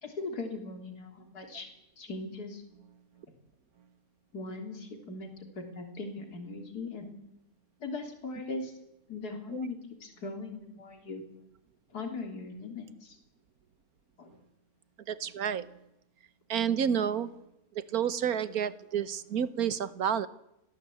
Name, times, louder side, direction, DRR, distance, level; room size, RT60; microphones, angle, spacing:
voice 1, 0.0-1.7 2.0-2.6 4.3-5.3 5.6-7.1 7.8-8.7 9.1-11.2 11.9-13.2 14.2-14.4, left 3 dB, 60° left, 4 dB, 3.8 m, -39 dB
voice 2, 15.1-15.7 16.5-17.3 17.7-20.3, right 8 dB, 60° right, 15 dB, 1.5 m, -30 dB
27.5 x 17.5 x 8.5 m, 0.87 s
omnidirectional pair, 1.9 m